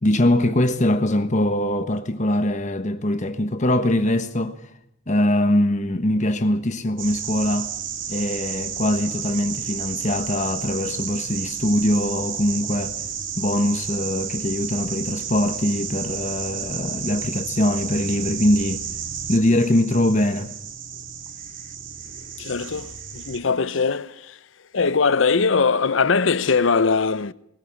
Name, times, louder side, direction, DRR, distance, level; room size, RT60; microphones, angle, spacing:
voice 1, 0.0-4.6 5.1-7.7 8.1-13.0 13.4-18.8 19.3-20.5, left 1 dB, 40° left, 1.2 m, -22 dB
sesitivity action, 7.0-23.4, right 8 dB, 75° right, 2.1 m, -32 dB
voice 2, 22.4-24.3 24.7-27.3, left 5 dB, 75° left, 0.7 m, -21 dB
20.0 x 14.0 x 9.9 m
head